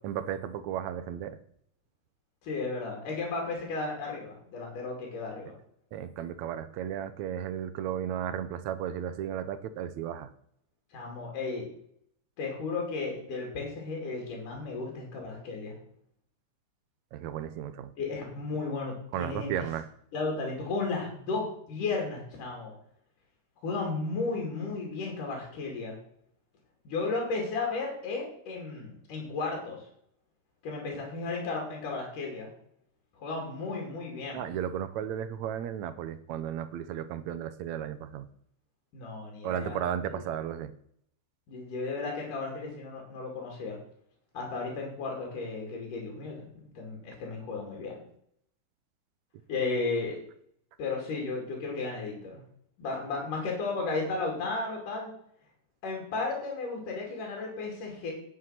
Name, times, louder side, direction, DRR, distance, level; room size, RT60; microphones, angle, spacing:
voice 1, 0.0-1.4 5.9-10.3 17.1-17.9 19.1-19.9 34.3-38.3 39.4-40.7, right 9 dB, 75° right, 12 dB, 1.8 m, -34 dB
voice 2, 2.4-5.5 10.9-11.7 12.4-15.7 18.0-19.7 20.1-22.7 23.6-25.9 26.8-29.8 30.6-32.5 33.2-34.5 38.9-39.8 40.1-40.2 41.5-43.8 44.3-48.0 49.5-50.2 50.8-52.4 52.8-55.1 55.8-58.1, left 3 dB, 75° left, 0 dB, 4.2 m, -34 dB
9.9 x 7.7 x 5.8 m, 0.68 s
omnidirectional pair, 3.7 m